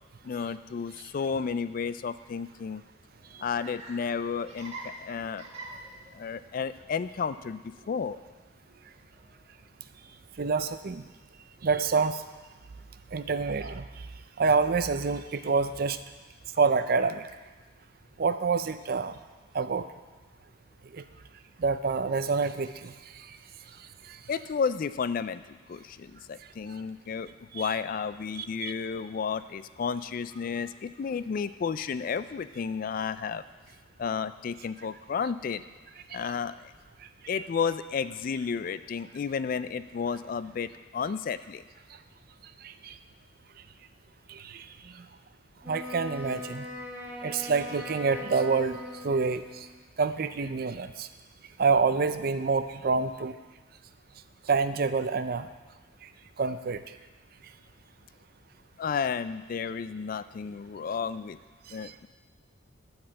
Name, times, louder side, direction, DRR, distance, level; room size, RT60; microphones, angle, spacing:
voice 1, 0.2-2.8 3.4-5.4 6.1-8.2 24.3-33.4 34.0-35.6 36.1-36.7 37.3-41.6 58.8-61.4 61.7-62.1, left 6 dB, 45° left, 14 dB, 0.3 m, -32 dB
Laughter, 3.0-10.6, right 2 dB, 30° right, 1.7 m, -48 dB
voice 2, 10.4-11.0 11.6-12.2 13.1-13.9 14.4-16.0 16.6-17.3 18.2-19.2 19.5-19.9 20.9-21.0 21.6-22.9 23.3-23.4 24.1-24.2 27.5-27.7 28.3-28.7 36.1-36.3 42.6-42.9 44.3-44.7 44.9-45.0 45.7-46.7 47.2-48.8 49.0-49.7 50.0-51.1 51.6-53.4 54.5-55.5 56.4-56.8 61.8-61.9, right 4 dB, 50° right, 11 dB, 0.5 m, -27 dB
Wind instrument woodwind instrument, 45.6-49.8, left 1 dB, 10° right, 1.0 m, -41 dB
12.0 x 4.8 x 7.5 m, 1.3 s
head